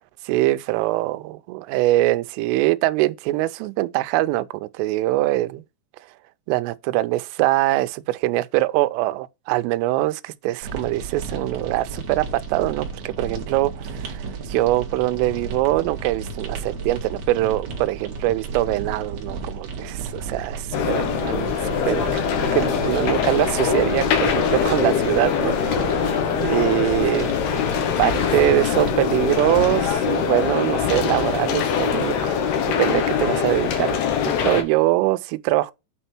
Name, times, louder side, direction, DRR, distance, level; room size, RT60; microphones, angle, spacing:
voice 1, 0.3-5.6 6.5-21.5 21.9-27.3 28.0-32.4 32.8-34.0 34.2-35.7, right 17 dB, 85° right, 3.1 m, -23 dB
sound 1, 10.6-29.9, right 4 dB, 60° right, 1.8 m, -33 dB
sound 2, 20.7-34.6, left 7 dB, 70° left, 2.6 m, -23 dB
8.9 x 4.5 x 4.3 m
omnidirectional pair, 5.8 m